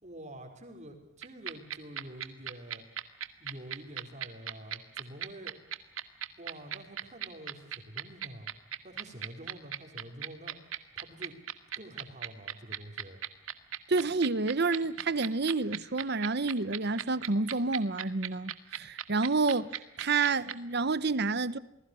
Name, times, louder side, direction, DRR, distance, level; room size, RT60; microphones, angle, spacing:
voice 1, 0.0-2.8 3.4-5.5 6.4-8.5 8.8-10.6 11.0-11.3 11.8-13.2, right 1 dB, 35° right, 4.9 m, -47 dB
sound 1, 1.2-20.5, right 10 dB, 85° right, 1.9 m, -36 dB
voice 2, 13.9-21.6, right 3 dB, 50° right, 1.0 m, -29 dB
28.5 x 20.5 x 6.3 m
head